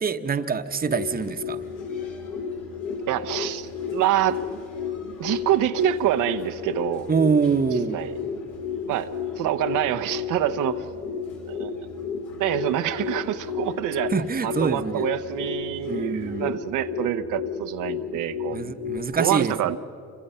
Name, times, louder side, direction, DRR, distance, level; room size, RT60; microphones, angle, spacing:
voice 1, 0.0-1.6 7.1-8.0 14.1-15.1 15.9-16.6 18.5-19.6, right 5 dB, 30° right, 9 dB, 1.0 m, -25 dB
sound 1, 0.6-19.0, left 6 dB, 65° left, 2.7 m, -33 dB
sound 2, 1.2-16.5, left 3 dB, 80° left, 3.9 m, -51 dB
voice 2, 3.1-4.4 5.2-7.1 7.9-8.1 8.9-9.1 9.3-10.9 11.5-11.8 12.4-14.1 14.4-18.6 19.1-19.8, right 12 dB, 90° right, 8 dB, 0.9 m, -26 dB
28.0 x 24.5 x 5.6 m, 2.5 s
cardioid pair, 90°, 30 cm